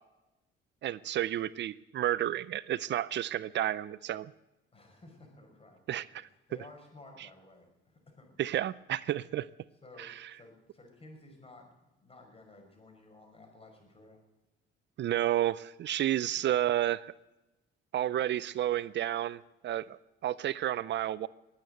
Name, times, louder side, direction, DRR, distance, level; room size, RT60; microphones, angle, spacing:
voice 1, 0.8-4.3 5.9-6.3 8.4-9.5 10.0-10.1 15.0-17.0 17.9-21.3, right 12 dB, 65° right, 18 dB, 0.5 m, -31 dB
voice 2, 4.7-8.4 9.8-14.2, left 2 dB, 30° left, 3 dB, 5.7 m, -55 dB
21.5 x 8.6 x 7.8 m, 1.0 s
cardioid pair, 90°, 20 cm